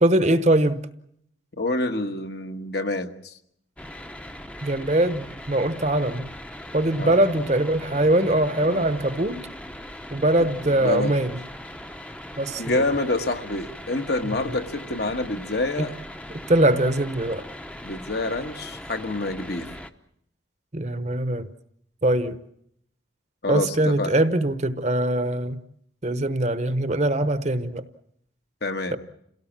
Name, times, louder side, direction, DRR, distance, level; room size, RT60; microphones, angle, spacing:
voice 1, 0.0-0.8 4.6-6.3 6.7-9.4 10.1-11.3 12.4-12.8 14.4-14.5 15.8-15.9 16.5-17.4 20.7-21.5 22.0-22.4 23.5-25.6 26.0-27.9 28.9-29.0, right 1 dB, 35° right, 11 dB, 1.0 m, -22 dB
voice 2, 1.6-3.4 7.0-7.2 8.6-8.9 10.4-10.5 10.8-11.1 12.6-15.9 17.8-19.7 23.4-24.1 28.6-29.0, left 2 dB, 55° left, 5 dB, 1.4 m, -27 dB
sound 1, 3.8-19.9, left 1 dB, 5° left, 0.8 m, -40 dB
28.0 x 17.5 x 7.4 m, 0.73 s
head